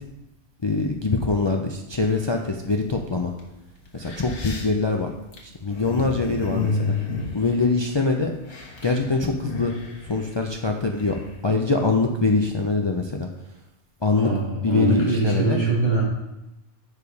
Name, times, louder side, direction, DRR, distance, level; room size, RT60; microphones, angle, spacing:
voice 1, 0.6-3.3 3.9-5.1 5.4-7.0 7.3-8.3 8.8-9.7 10.1-11.1 11.4-13.3 14.0-14.3 14.6-15.6, left 3 dB, 40° left, 2 dB, 0.4 m, -23 dB
sound 1, 2.0-2.6 3.4-3.5 3.9-8.1 8.4-9.0 9.3-11.3, left 4 dB, 70° left, 1.6 m, -31 dB
voice 2, 14.1-16.0, right 3 dB, 20° left, -6 dB, 2.4 m, -23 dB
6.7 x 4.9 x 5.3 m, 0.95 s
omnidirectional pair, 1.2 m